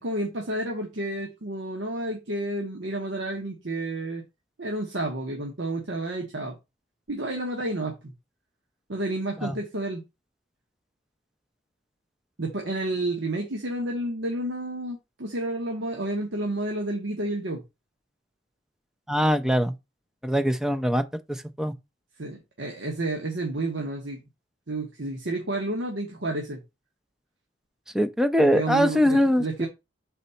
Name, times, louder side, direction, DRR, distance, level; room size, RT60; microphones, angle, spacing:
voice 1, 0.0-4.2 4.6-6.6 7.1-8.1 8.9-10.0 12.4-17.6 22.2-24.2 24.7-26.6 28.4-29.7, right 1 dB, 75° right, 1.2 m, -30 dB
voice 2, 19.1-19.7 20.2-21.0 21.6-21.7 27.9-29.7, equal, 5° right, 0.5 m, -22 dB
4.2 x 4.0 x 5.6 m
head